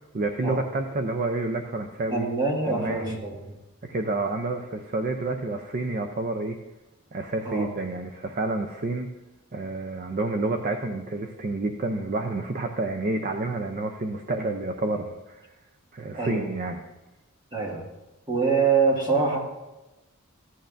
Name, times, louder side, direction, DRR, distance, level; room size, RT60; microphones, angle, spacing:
voice 1, 0.0-2.3 2.6-3.2 3.8-6.6 7.1-9.1 9.5-15.4 15.9-16.8, right 2 dB, 40° right, 5 dB, 0.5 m, -29 dB
voice 2, 2.1-3.3 7.5-7.7 16.1-16.5 17.5-17.8 18.3-19.4, right 4 dB, 20° right, -2 dB, 1.9 m, -24 dB
14.5 x 9.0 x 2.6 m, 1.0 s
head